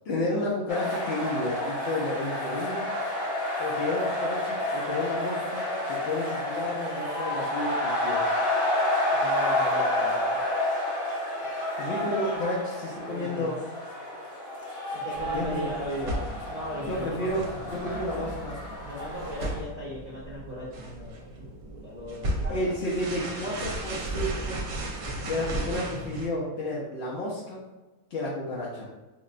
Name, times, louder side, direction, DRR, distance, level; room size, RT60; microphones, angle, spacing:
voice 1, 0.0-2.9 3.6-8.4 11.8-13.6 15.3-15.7 16.9-18.6 22.5-24.6 25.2-27.6 28.1-28.9, left 1 dB, 60° left, -6 dB, 0.6 m, -31 dB
sound 1, 0.7-19.6, left 1 dB, 25° left, 0.8 m, -30 dB
voice 2, 9.1-10.4 13.0-13.5 14.9-16.2 16.5-17.3 18.8-22.7, equal, 40° right, -8 dB, 0.6 m, -38 dB
sound 2, 15.1-26.3, right 1 dB, 75° right, 1.1 m, -35 dB
4.8 x 2.1 x 2.4 m, 1.2 s
omnidirectional pair, 1.6 m